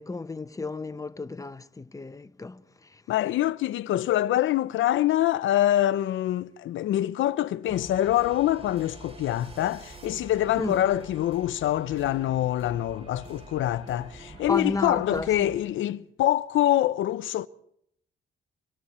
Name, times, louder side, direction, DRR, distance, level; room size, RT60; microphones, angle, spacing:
voice 1, 0.0-3.0 10.6-10.8 14.5-15.5, left 3 dB, 15° left, 0.9 m, -33 dB
voice 2, 3.1-17.5, left 13 dB, 75° left, 0.7 m, -25 dB
sound 1, 7.7-15.6, right 2 dB, 30° right, 4.0 m, -46 dB
27.5 x 23.5 x 4.3 m
cardioid pair, 90°, 20 cm